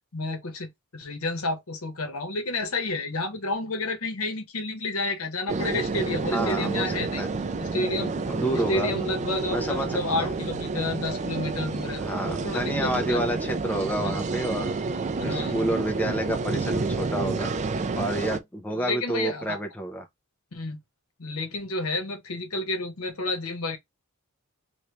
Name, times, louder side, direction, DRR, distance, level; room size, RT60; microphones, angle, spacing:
voice 1, 0.1-7.2 7.6-8.1 8.5-13.2 14.0-14.2 15.1-15.7 18.7-19.6 20.5-20.8 21.2-23.8, left 2 dB, 80° left, 1.0 m, -30 dB
sound 1, 5.5-18.4, right 3 dB, 35° right, 0.4 m, -29 dB
voice 2, 6.3-7.3 8.3-8.9 9.5-10.4 12.0-14.7 15.2-17.5 17.9-20.1, right 1 dB, 10° left, 0.7 m, -29 dB
3.2 x 2.7 x 3.0 m
head